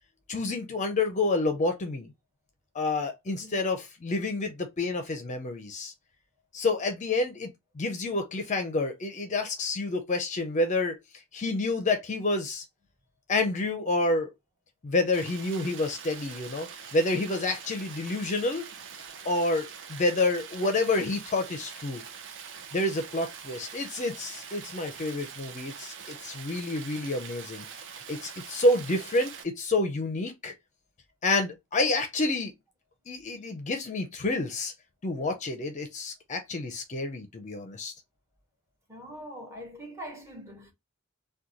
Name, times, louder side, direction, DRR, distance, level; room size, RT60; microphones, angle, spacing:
voice 1, 0.3-2.1 2.7-5.9 6.5-7.5 7.8-11.0 11.3-12.6 13.3-14.3 14.8-18.7 19.2-22.0 22.7-27.7 28.1-30.5 31.2-32.5 33.1-34.7 35.0-37.9, left 2 dB, 35° left, 0.5 m, -28 dB
Stream, 15.1-29.4, right 7 dB, 60° right, 0.6 m, -44 dB
voice 2, 38.9-40.7, equal, 15° right, 1.1 m, -43 dB
2.9 x 2.2 x 3.7 m
head